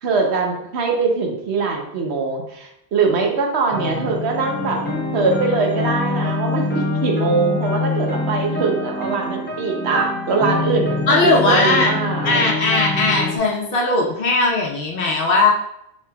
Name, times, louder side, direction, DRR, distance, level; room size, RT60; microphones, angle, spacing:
voice 1, 0.0-4.8 5.1-12.5, right 4 dB, 75° right, 1 dB, 1.0 m, -22 dB
sound 1, 3.7-13.4, left 3 dB, 15° left, 0.3 m, -25 dB
voice 2, 11.1-12.0 12.2-15.5, left 3 dB, 60° left, -1 dB, 0.9 m, -18 dB
4.9 x 3.3 x 2.3 m, 0.78 s
omnidirectional pair, 1.1 m